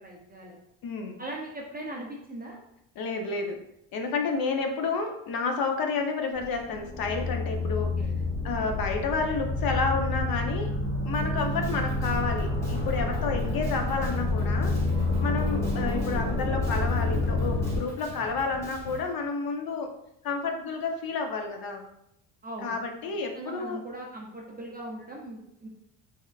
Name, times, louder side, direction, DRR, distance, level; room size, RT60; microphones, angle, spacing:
voice 1, 0.0-0.6 1.2-2.6 7.7-8.1 13.1-13.3 22.4-22.8 23.3-25.7, right 1 dB, 20° right, -2 dB, 0.4 m, -40 dB
voice 2, 0.8-1.2 3.0-3.6 3.9-7.9 8.4-10.7 11.0-14.8 15.2-19.9 20.2-21.8 22.6-23.8, left 4 dB, 50° left, 4 dB, 0.6 m, -30 dB
sound 1, 6.4-17.8, left 2 dB, 25° left, 1.3 m, -28 dB
Drum kit, 11.1-19.1, equal, 5° left, 0.8 m, -44 dB
3.4 x 3.3 x 2.3 m, 0.78 s
cardioid pair, 125°, 48 cm